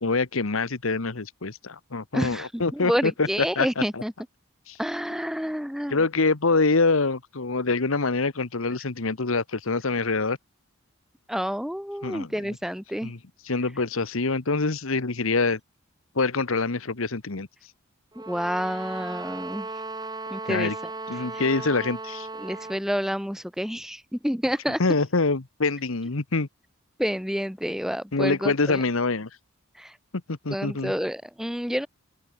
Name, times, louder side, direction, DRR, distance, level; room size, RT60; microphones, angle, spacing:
voice 1, 0.0-3.3 3.6-4.0 4.7-4.8 5.9-10.4 12.0-12.3 13.0-13.2 13.4-15.6 16.1-17.5 20.5-20.8 21.1-22.3 24.8-26.5 28.1-29.3 30.3-30.9, left 3 dB, 75° left, 1.2 m, -25 dB
voice 2, 2.1-4.1 4.8-6.0 11.3-13.1 18.3-19.7 20.3-20.9 22.4-24.8 27.0-28.8 29.8-29.9 30.5-31.9, equal, ahead, 2.9 m, -29 dB
sound 1, 18.1-22.9, right 3 dB, 20° right, 7.8 m, -36 dB
open air
head